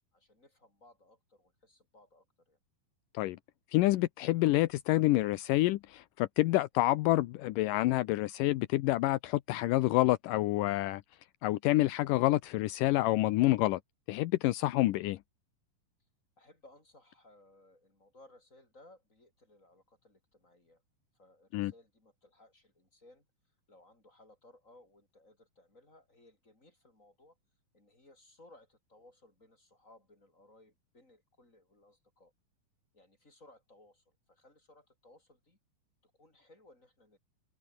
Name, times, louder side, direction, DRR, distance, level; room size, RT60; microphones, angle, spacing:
voice 1, 0.1-2.6 16.4-20.8 21.1-23.3 23.7-27.4 27.7-32.3 32.9-35.6 36.0-37.2, left 2 dB, 20° left, 8.5 m, -61 dB
voice 2, 3.7-11.0 11.4-13.8 14.1-15.2 21.5-21.7, left 17 dB, 80° left, 2.3 m, -28 dB
open air
omnidirectional pair, 3.9 m